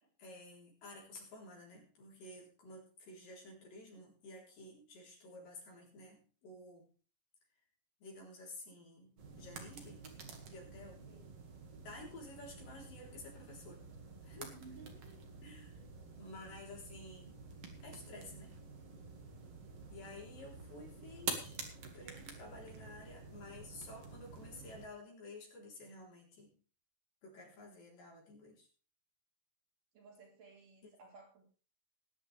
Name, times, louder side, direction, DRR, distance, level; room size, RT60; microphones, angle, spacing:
voice 1, 0.2-6.9 8.0-10.0 10.5-11.1 11.8-13.8 14.2-14.5 15.4-15.8 16.2-17.4 17.8-18.5 19.9-21.6 21.9-26.5 27.2-28.7, left 2 dB, 65° left, -2 dB, 5.5 m, -52 dB
sound 1, 9.2-24.9, right 4 dB, 45° right, 2.7 m, -49 dB
voice 2, 11.1-11.4 14.4-15.2 15.8-15.9 29.9-31.5, right 4 dB, 60° right, -2 dB, 5.6 m, -57 dB
19.0 x 10.5 x 3.4 m, 0.39 s
omnidirectional pair, 4.2 m